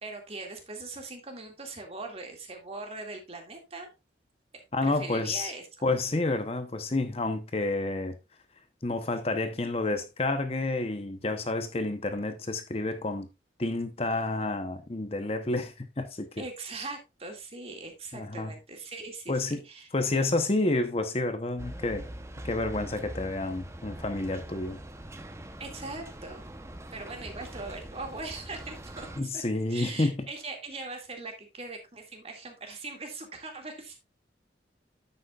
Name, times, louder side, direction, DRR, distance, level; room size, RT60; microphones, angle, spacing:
voice 1, 0.0-3.9 4.8-5.7 16.4-19.9 25.6-26.4 26.9-29.4 29.7-34.0, right 3 dB, 35° right, 2.1 m, -41 dB
voice 2, 4.7-5.5 5.8-8.1 8.8-13.3 13.6-16.4 18.1-18.5 19.3-19.6 19.9-22.1 22.4-24.8 29.2-30.3, left 2 dB, 35° left, 0.8 m, -29 dB
sound 1, 21.6-29.2, right 1 dB, 15° right, 0.8 m, -43 dB
9.9 x 8.1 x 2.4 m
head